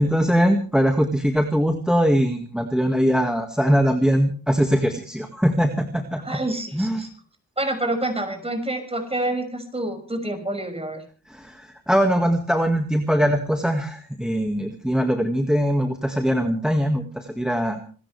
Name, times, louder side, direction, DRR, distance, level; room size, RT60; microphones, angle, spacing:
voice 1, 0.0-6.2 6.7-7.0 11.3-17.8, equal, ahead, 5 dB, 1.9 m, -21 dB
voice 2, 6.2-7.1 7.6-11.0, right 1 dB, 15° right, 6 dB, 6.2 m, -27 dB
26.5 x 14.0 x 3.3 m, 0.41 s
cardioid pair, 85°, 33 cm